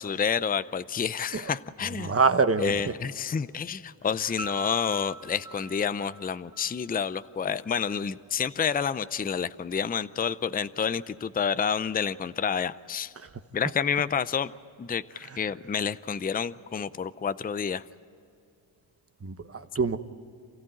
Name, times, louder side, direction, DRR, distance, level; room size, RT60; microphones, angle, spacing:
voice 1, 0.0-2.2 2.6-13.1 13.5-14.5 14.8-17.8, left 7 dB, 20° left, 14 dB, 0.5 m, -29 dB
voice 2, 2.0-2.7 19.2-20.0, right 4 dB, 30° right, 10 dB, 1.1 m, -24 dB
Piano, 4.4-7.2, right 5 dB, 10° right, 0.9 m, -43 dB
28.5 x 15.0 x 9.1 m, 2.5 s
cardioid pair, 80°, 45 cm